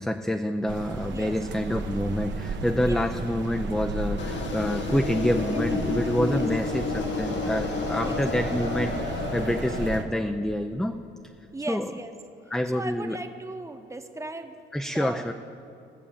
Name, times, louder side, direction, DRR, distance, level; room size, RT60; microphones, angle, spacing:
voice 1, 0.0-11.0 11.7-11.9 12.5-13.2 14.7-15.3, equal, ahead, 6 dB, 0.5 m, -27 dB
sound 1, 0.7-10.0, right 3 dB, 65° right, 1.1 m, -34 dB
sound 2, 4.2-10.0, left 4 dB, 65° left, 1.4 m, -30 dB
voice 2, 5.4-6.5 8.0-8.2 9.6-9.7 11.5-12.1 12.7-14.6 14.9-15.3, right 2 dB, 15° right, 7 dB, 1.0 m, -38 dB
16.0 x 7.1 x 7.1 m, 2.5 s
cardioid pair, 90°, 20 cm